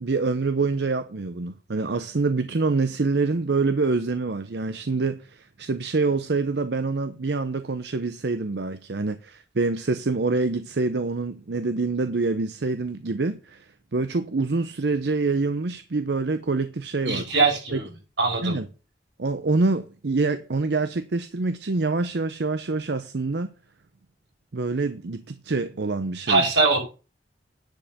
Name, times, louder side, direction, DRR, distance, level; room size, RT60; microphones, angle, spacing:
voice 1, 0.0-17.2 17.7-17.8 18.4-18.7 19.2-23.5 24.5-26.4, right 3 dB, 70° right, 0.7 m, -26 dB
voice 2, 17.1-17.9 18.2-18.6 26.3-26.8, right 3 dB, 90° right, 5.9 m, -21 dB
10.5 x 5.0 x 6.5 m
head